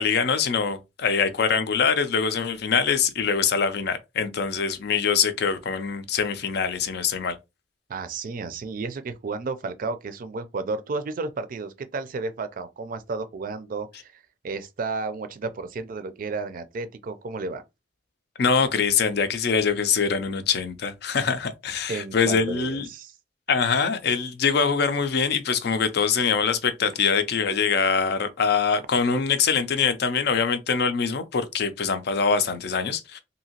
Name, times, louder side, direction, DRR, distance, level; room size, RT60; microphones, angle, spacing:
voice 1, 0.0-7.4 18.4-22.9 23.5-33.2, left 6 dB, 65° left, 0.5 m, -24 dB
voice 2, 7.9-17.6 21.9-23.1, right 3 dB, 50° right, 0.4 m, -32 dB
2.8 x 2.7 x 2.8 m
head